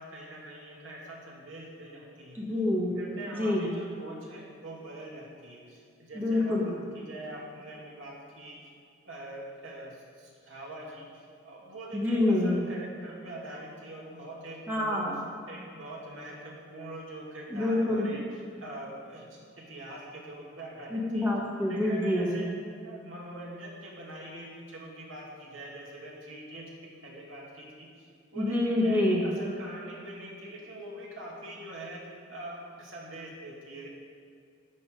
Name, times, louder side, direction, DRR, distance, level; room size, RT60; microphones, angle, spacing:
voice 1, 0.0-2.4 2.9-8.7 9.0-15.1 15.5-18.3 18.6-19.4 19.7-21.3 21.7-22.5 22.8-26.7 27.0-28.1 28.3-33.9, right 1 dB, 80° right, -3 dB, 2.5 m, -43 dB
voice 2, 2.3-2.9 3.3-3.7 6.1-6.7 11.9-12.6 14.7-15.2 17.5-18.2 20.9-22.3 28.4-29.3, left 1 dB, 10° right, -4 dB, 1.6 m, -27 dB
12.0 x 8.4 x 5.3 m, 2.2 s
head